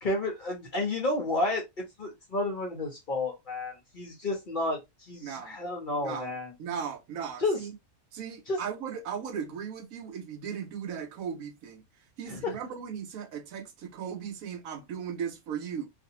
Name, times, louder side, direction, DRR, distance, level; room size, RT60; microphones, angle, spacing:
voice 1, 0.0-6.5 7.4-7.6 8.5-8.6 12.3-12.6, left 2 dB, 45° left, 0.8 m, -31 dB
voice 2, 5.2-5.6 6.0-6.3 6.6-7.7 8.1-11.8 12.2-15.9, right 7 dB, 75° right, 1.0 m, -37 dB
2.6 x 2.6 x 2.6 m
omnidirectional pair, 1.5 m